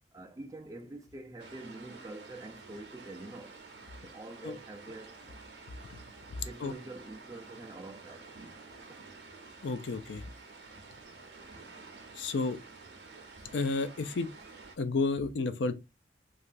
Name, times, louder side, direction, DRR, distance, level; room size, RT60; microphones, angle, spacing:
voice 1, 0.1-3.6 4.0-5.2 6.5-8.3 8.8-9.0, right 2 dB, 20° right, 0.3 m, -46 dB
sound 1, 1.4-14.8, right 3 dB, 75° right, 0.7 m, -50 dB
voice 2, 9.6-10.3 12.2-12.6 13.5-14.3 14.8-15.7, left 3 dB, 85° left, 0.4 m, -31 dB
3.2 x 2.4 x 2.5 m
head